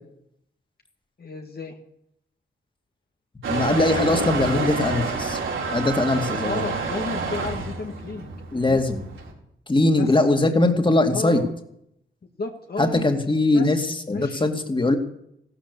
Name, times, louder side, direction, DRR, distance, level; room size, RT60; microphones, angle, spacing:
voice 1, 1.2-1.8 6.4-8.8 10.0-10.1 11.1-11.5 12.4-13.1 13.5-13.7 14.1-14.5, left 3 dB, 50° left, 3 dB, 1.8 m, -32 dB
Motor vehicle (road) / Engine starting / Accelerating revving vroom, 3.4-9.3, right 4 dB, 85° right, 4.4 m, -28 dB
voice 2, 3.5-5.4 5.7-6.7 8.5-9.0 9.7-11.4 12.8-15.0, left 2 dB, 25° left, 5 dB, 2.6 m, -21 dB
16.0 x 13.0 x 7.0 m, 0.75 s
cardioid pair, 70°, 20 cm